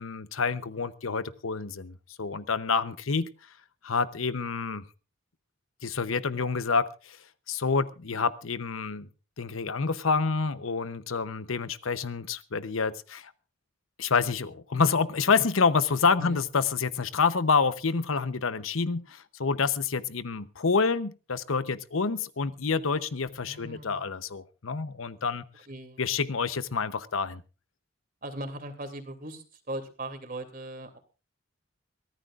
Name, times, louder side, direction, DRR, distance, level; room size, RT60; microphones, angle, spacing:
voice 1, 0.0-3.3 3.8-4.8 5.8-7.2 7.5-9.1 9.4-13.3 14.0-25.4 26.0-27.4, left 5 dB, 85° left, 13 dB, 0.9 m, -28 dB
voice 2, 23.4-24.0 25.7-26.1 28.2-31.0, right 1 dB, 45° right, 7 dB, 2.7 m, -39 dB
23.0 x 15.0 x 2.5 m, 0.33 s
head